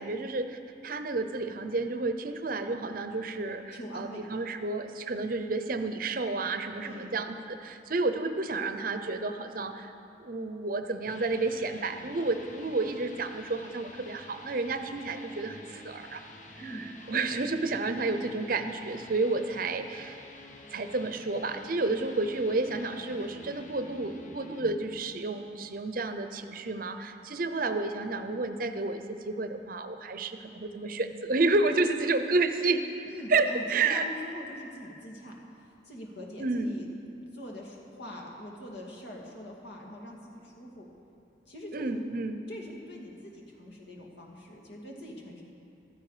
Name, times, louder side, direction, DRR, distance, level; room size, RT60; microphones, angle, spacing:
voice 1, 0.0-9.9 10.2-16.2 16.6-20.2 20.7-32.8 33.3-34.1 36.4-36.7 41.7-42.4, right 3 dB, 50° right, 8 dB, 0.7 m, -30 dB
voice 2, 3.7-4.2 6.8-7.2 16.6-16.8 33.0-36.9 37.3-40.9 41.5-42.0 42.5-45.4, equal, 65° left, -1 dB, 2.4 m, -43 dB
sound 1, 10.9-24.7, left 2 dB, 45° left, 1.0 m, -49 dB
15.5 x 13.0 x 5.0 m, 2.7 s
head